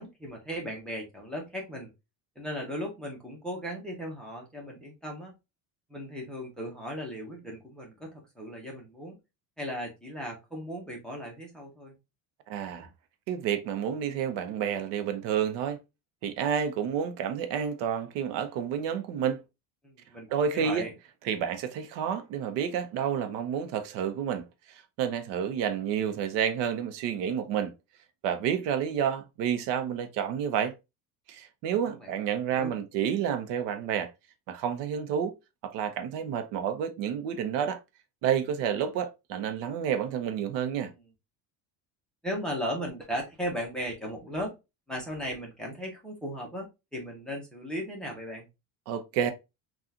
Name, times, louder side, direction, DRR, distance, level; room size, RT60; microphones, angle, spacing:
voice 1, 0.0-1.9 2.4-5.3 5.9-9.2 9.6-11.9 19.8-20.9 31.9-32.1 32.5-32.7 42.2-44.5 44.9-48.5, equal, ahead, 0.7 m, -37 dB
voice 2, 12.5-12.9 13.3-15.8 16.2-19.4 20.3-20.9 21.2-27.7 28.2-30.7 31.3-34.1 34.5-35.3 35.6-37.8 38.2-40.9 48.9-49.3, right 8 dB, 75° right, 0.7 m, -30 dB
3.6 x 2.4 x 2.6 m
cardioid pair, 170°, 45 cm